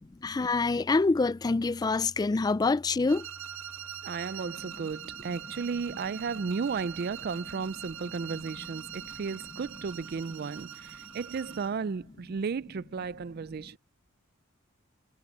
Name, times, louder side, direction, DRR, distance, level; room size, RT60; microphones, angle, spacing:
voice 1, 0.1-3.3 4.5-4.9 8.2-8.4 9.0-9.5 13.6-13.8, left 3 dB, 20° left, 0.3 m, -27 dB
sound 1, 3.1-11.8, right 9 dB, 75° right, 1.4 m, -43 dB
voice 2, 4.0-13.8, right 5 dB, 50° right, 0.4 m, -34 dB
head